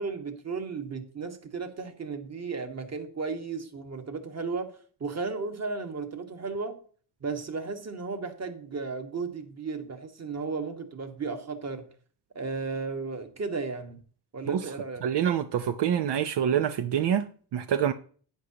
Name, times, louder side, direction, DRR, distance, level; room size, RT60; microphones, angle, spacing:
voice 1, 0.0-6.8 7.2-11.9 12.3-14.0 14.3-15.0, right 4 dB, 40° right, 1.6 m, -34 dB
voice 2, 15.0-17.9, right 9 dB, 80° right, 0.8 m, -26 dB
11.5 x 9.7 x 2.9 m
wide cardioid pair, 125°, 40 cm